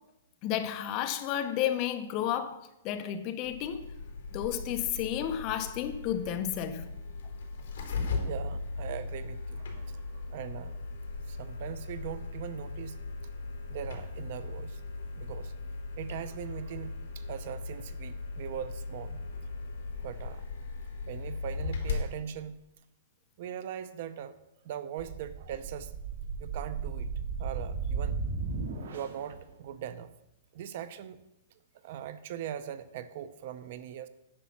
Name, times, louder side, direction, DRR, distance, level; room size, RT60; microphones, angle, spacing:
voice 1, 0.4-3.8 4.3-6.9, left 10 dB, 25° left, 0.7 m, -32 dB
sound 1, 3.4-22.1, left 3 dB, 55° left, 4.0 m, -38 dB
voice 2, 8.2-10.0 10.3-10.8 11.3-13.0 13.7-14.8 15.2-15.5 16.0-19.2 20.0-20.4 21.0-22.6 23.4-24.4 24.6-25.9 26.4-27.1 27.4-28.2 28.9-30.1 30.5-31.2 31.8-34.1, right 9 dB, 40° right, 0.5 m, -40 dB
sound 2, 25.0-29.3, right 5 dB, 75° right, 1.9 m, -35 dB
9.8 x 6.1 x 7.2 m
hypercardioid pair, 175°, 0 cm